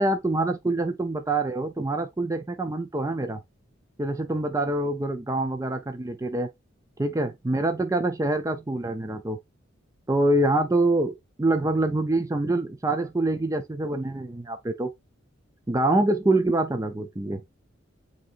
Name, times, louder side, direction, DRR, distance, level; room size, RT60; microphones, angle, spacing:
voice 1, 0.0-3.4 4.0-6.5 7.0-9.4 10.1-14.9 15.7-17.4, right 2 dB, 15° right, 0.4 m, -25 dB
7.7 x 2.8 x 2.5 m
head